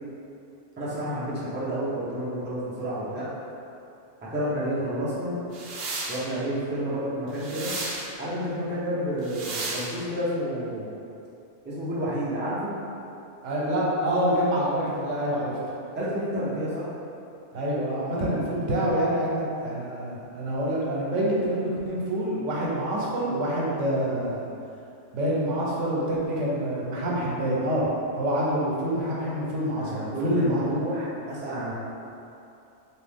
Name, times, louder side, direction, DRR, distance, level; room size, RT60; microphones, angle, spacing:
voice 1, 0.8-3.3 4.2-5.3 6.1-7.7 8.2-11.0 11.6-12.7 15.9-16.9 29.8-31.7, equal, 15° right, -9 dB, 0.5 m, -30 dB
sound 1, 5.5-6.2 7.3-8.1 9.2-9.9, right 3 dB, 60° right, 0.7 m, -33 dB
voice 2, 13.4-15.5 17.5-24.5 25.1-27.9 28.2-30.6, right 1 dB, 80° right, -5 dB, 1.1 m, -26 dB
2.9 x 2.7 x 3.5 m, 2.7 s
omnidirectional pair, 1.2 m